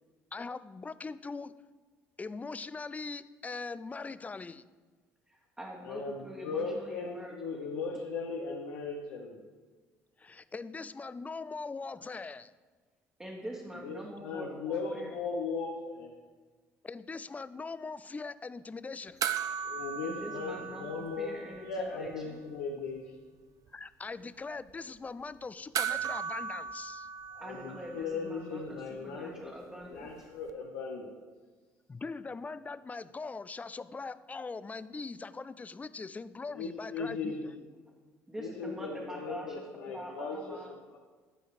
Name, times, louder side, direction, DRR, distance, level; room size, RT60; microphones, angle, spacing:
voice 1, 0.3-1.5 2.2-4.6 10.2-12.6 16.8-19.2 23.7-27.1 31.9-37.4, left 4 dB, 20° left, 16 dB, 0.4 m, -41 dB
voice 2, 5.3-7.8 13.2-15.2 20.0-22.4 27.4-30.1 38.3-40.7, equal, 15° right, -3 dB, 1.4 m, -44 dB
voice 3, 5.8-9.4 13.7-16.2 19.6-21.3 21.6-23.2 27.3-29.5 29.8-31.1 36.5-37.5 38.4-40.6 40.9-41.0, left 4 dB, 85° left, -1 dB, 0.8 m, -38 dB
sound 1, 19.2-21.9 22.1-22.2 25.7-28.3 30.5-30.6, right 8 dB, 55° right, 0.5 m, -37 dB
11.0 x 4.7 x 4.9 m, 1.4 s
supercardioid pair, 70°, 7 cm